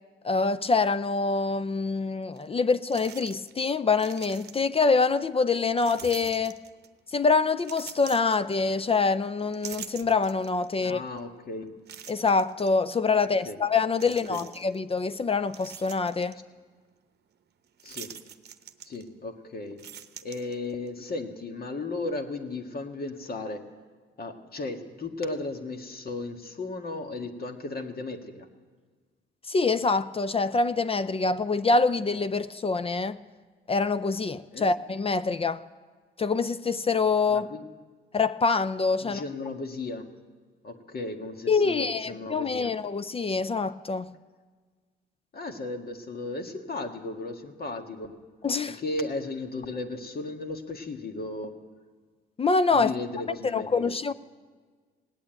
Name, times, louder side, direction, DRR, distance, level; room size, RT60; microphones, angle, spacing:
voice 1, 0.2-6.6 7.1-11.0 12.1-16.4 29.5-33.2 33.7-35.6 36.2-37.5 38.1-39.2 41.5-44.1 48.4-48.8 52.4-52.9 53.5-54.1, left 4 dB, 25° left, 0.5 m, -25 dB
sound 1, 2.4-2.5 2.9-3.6 3.9-4.8 5.8-7.0 7.6-9.0 9.4-10.7 11.2-11.3 11.9-12.7 13.9-14.8 15.2-16.4 17.8-19.3 19.6-20.9, right 8 dB, 50° right, 0.9 m, -45 dB
voice 2, 10.8-11.7 13.4-13.6 14.3-14.4 17.8-18.1 18.8-19.8 20.2-23.7 24.2-28.5 34.5-34.7 37.3-37.7 39.0-40.1 40.6-42.8 45.3-48.1 48.8-51.6 52.7-53.9, left 2 dB, 45° left, 1.7 m, -35 dB
18.0 x 8.7 x 8.9 m
supercardioid pair, 70°, 21 cm